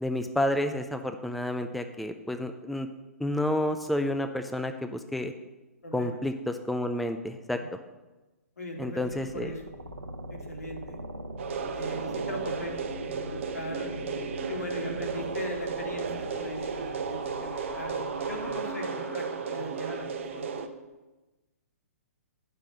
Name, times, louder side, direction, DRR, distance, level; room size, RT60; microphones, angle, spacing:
voice 1, 0.0-2.9 3.2-5.3 5.9-7.6 8.8-9.5, left 1 dB, ahead, 7 dB, 0.3 m, -30 dB
voice 2, 5.8-6.2 7.6-7.7 8.6-9.6 10.3-11.0 11.7-13.9 14.5-20.5, left 1 dB, 75° left, 1 dB, 2.0 m, -39 dB
sound 1, 9.0-20.0, right 1 dB, 90° right, 1.0 m, -42 dB
sound 2, 11.4-20.7, right 5 dB, 50° right, 0.8 m, -34 dB
8.9 x 5.6 x 6.3 m, 1.1 s
figure-of-eight pair, 125°, 8 cm